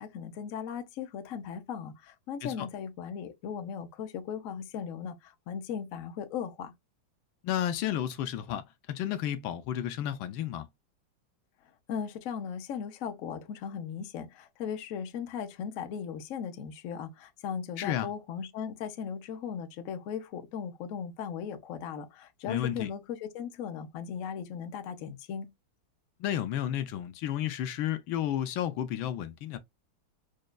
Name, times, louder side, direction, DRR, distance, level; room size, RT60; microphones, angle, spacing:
voice 1, 0.0-6.7 11.9-25.5, left 7 dB, 60° left, 0.9 m, -37 dB
voice 2, 7.4-10.7 17.8-18.1 22.5-22.9 26.2-29.6, left 11 dB, 80° left, 1.4 m, -32 dB
6.3 x 2.3 x 2.2 m
omnidirectional pair, 2.2 m